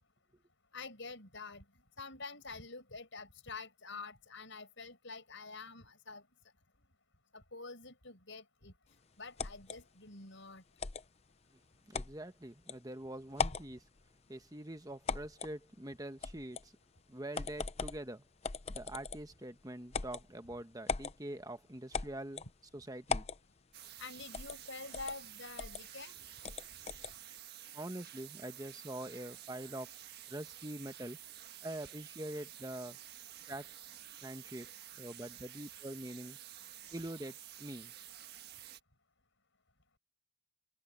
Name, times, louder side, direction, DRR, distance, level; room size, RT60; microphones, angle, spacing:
voice 1, 0.7-1.6 2.0-6.2 7.3-8.7 9.2-10.6 24.0-26.2, left 3 dB, 60° left, 7.8 m, -47 dB
sound 1, 9.4-9.8 10.8-11.0 11.9-12.1 12.7-12.8 13.3-13.7 15.1-15.5 16.2-16.7 17.3-18.0 18.4-19.3 19.9-20.2 20.9-21.1 21.9-22.5 23.1-23.4 24.3-24.6 24.9-25.1 25.6-25.8 26.4-27.1, left 5 dB, 30° left, 0.6 m, -38 dB
voice 2, 11.9-13.8 14.3-16.7 17.1-18.2 18.7-22.4 22.7-23.3 27.7-29.9 30.3-31.2 31.6-33.0 33.5-33.7 34.2-34.7 35.0-36.4 36.9-37.9, right 1 dB, 15° right, 1.1 m, -44 dB
sound 2, 23.7-38.8, right 11 dB, 50° right, 1.6 m, -51 dB
head